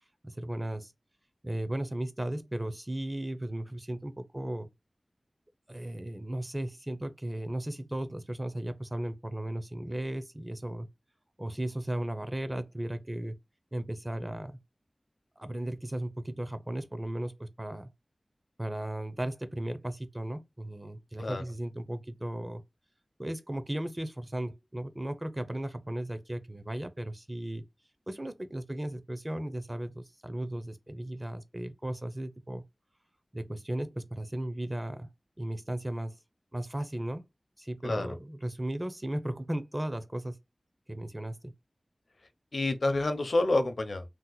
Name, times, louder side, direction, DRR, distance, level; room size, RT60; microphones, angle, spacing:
voice 1, 0.2-0.9 1.4-4.7 5.7-10.9 11.4-13.4 13.7-14.5 15.4-17.9 18.6-22.6 23.2-27.6 28.1-32.6 33.3-35.1 35.4-36.2 36.5-37.2 37.6-40.4 40.9-41.5, right 1 dB, 20° right, 0.5 m, -36 dB
voice 2, 37.8-38.2 42.5-44.0, left 2 dB, 70° left, 0.6 m, -28 dB
2.8 x 2.1 x 3.8 m
wide cardioid pair, 65°, 0 cm